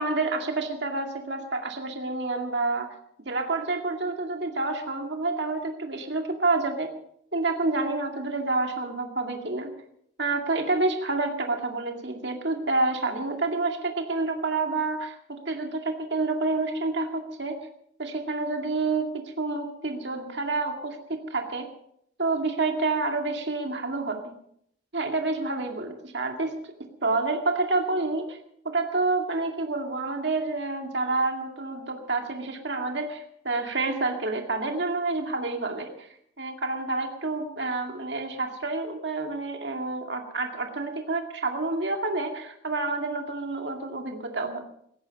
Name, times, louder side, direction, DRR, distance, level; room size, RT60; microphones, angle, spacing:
voice 1, 0.0-2.9 3.3-6.9 7.3-9.7 10.2-17.6 18.0-21.7 22.2-24.3 24.9-26.5 27.0-28.4 28.6-36.1 36.4-44.6, right 3 dB, 60° right, 4 dB, 2.2 m, -28 dB
17.5 x 14.5 x 5.3 m, 0.70 s
head